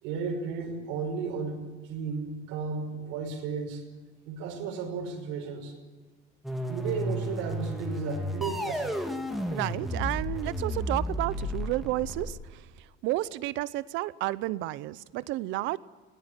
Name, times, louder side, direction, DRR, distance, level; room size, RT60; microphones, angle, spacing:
voice 1, 0.0-3.8 4.3-5.8 6.7-9.0, right 5 dB, 80° right, 4 dB, 5.5 m, -34 dB
sound 1, 6.4-12.3, equal, ahead, 2.1 m, -33 dB
voice 2, 9.5-15.8, right 17 dB, 65° right, 18 dB, 0.8 m, -31 dB
20.5 x 18.0 x 9.8 m, 1.3 s
cardioid pair, 160°, 21 cm